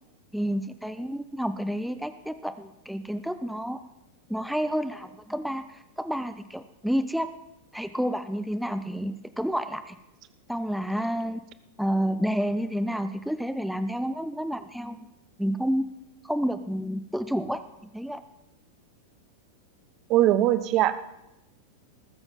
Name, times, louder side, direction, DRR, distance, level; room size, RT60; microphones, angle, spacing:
voice 1, 0.3-3.8 4.3-7.3 7.7-10.0 10.5-11.4 11.8-15.0 15.4-15.8 16.2-17.6 17.9-18.2, equal, ahead, 10 dB, 0.6 m, -29 dB
voice 2, 20.1-20.9, right 13 dB, 40° right, 13 dB, 0.8 m, -20 dB
19.5 x 7.1 x 5.6 m, 0.92 s
figure-of-eight pair, 90°, 0 cm